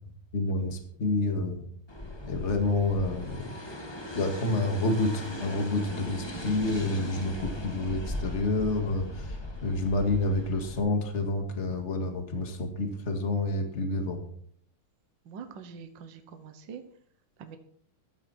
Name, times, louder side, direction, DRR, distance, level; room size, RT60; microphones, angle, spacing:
voice 1, 0.3-1.7 2.2-3.5 4.2-14.2, left 2 dB, 35° left, 5 dB, 2.0 m, -29 dB
sound 1, 1.9-10.8, left 1 dB, 15° left, 1.4 m, -38 dB
voice 2, 15.2-16.8 17.4-17.6, right 6 dB, 60° right, 8 dB, 1.7 m, -44 dB
13.5 x 12.0 x 4.4 m, 0.63 s
omnidirectional pair, 2.4 m